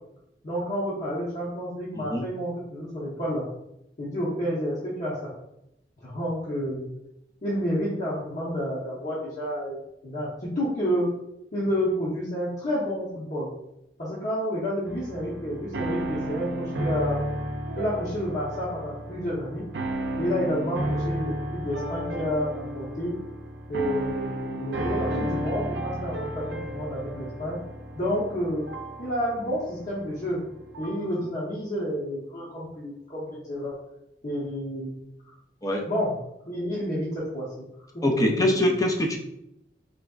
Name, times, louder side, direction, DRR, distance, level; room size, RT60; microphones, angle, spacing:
voice 1, 0.4-3.4 4.0-5.3 6.0-6.9 7.4-10.3 10.6-11.1 11.5-13.5 14.0-17.3 17.7-19.7 20.2-23.1 23.7-27.6 28.0-28.7 29.0-30.4 30.8-33.8 34.2-34.9 35.9-36.1 36.5-37.7 37.9-38.8, equal, 45° left, -9 dB, 0.9 m, -30 dB
voice 2, 2.0-2.3 35.6-35.9 38.0-39.2, left 1 dB, 20° left, 2 dB, 0.5 m, -23 dB
sound 1, 14.9-31.1, right 1 dB, 70° right, 0.5 m, -33 dB
4.0 x 3.4 x 2.4 m, 0.82 s
head